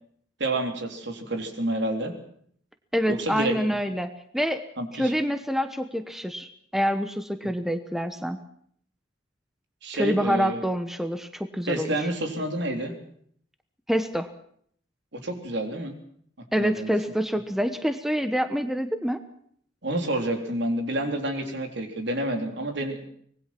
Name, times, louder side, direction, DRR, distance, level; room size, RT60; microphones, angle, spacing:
voice 1, 0.4-2.1 3.1-3.8 4.8-5.1 9.8-10.6 11.7-13.0 15.1-16.0 16.6-16.9 19.8-23.0, right 1 dB, 60° right, 5 dB, 3.8 m, -29 dB
voice 2, 2.9-4.6 4.9-8.4 10.0-11.9 13.9-14.3 16.5-19.2, equal, ahead, 9 dB, 1.1 m, -26 dB
25.0 x 20.0 x 6.0 m, 0.63 s
head